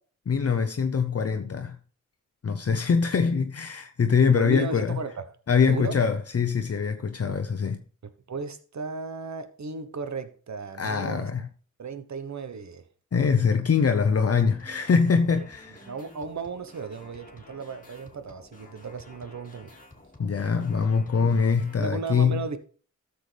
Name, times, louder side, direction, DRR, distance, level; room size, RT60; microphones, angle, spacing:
voice 1, 0.3-1.8 2.4-5.0 5.5-7.8 10.8-11.5 13.1-15.8 20.2-22.4, left 5 dB, 50° left, 0.8 m, -23 dB
voice 2, 4.3-5.1 5.7-6.0 8.3-11.3 11.8-12.8 15.4-15.5 15.9-19.7 21.8-22.6, right 4 dB, 65° right, 1.2 m, -35 dB
sound 1, 14.4-21.7, left 1 dB, 25° left, 2.5 m, -51 dB
13.5 x 6.9 x 3.4 m
cardioid pair, 60°, 30 cm